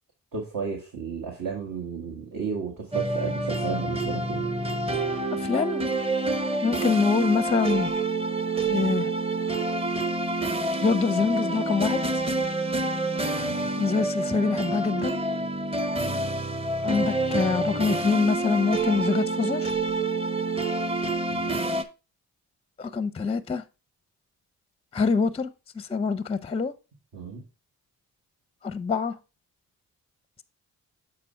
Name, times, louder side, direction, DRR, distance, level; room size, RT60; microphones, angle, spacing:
voice 1, 0.3-4.4 13.4-13.7 21.3-21.6 27.1-27.4, right 5 dB, 60° right, 1.8 m, -33 dB
sound 1, 2.9-21.8, right 2 dB, 15° right, 0.8 m, -27 dB
voice 2, 5.3-5.8 6.6-7.9 8.7-9.1 10.8-12.1 13.8-15.2 16.8-19.7 22.8-23.6 24.9-25.5 25.8-26.7 28.6-29.2, left 5 dB, 15° left, 0.5 m, -25 dB
7.6 x 4.3 x 4.4 m
supercardioid pair, 60°, 38 cm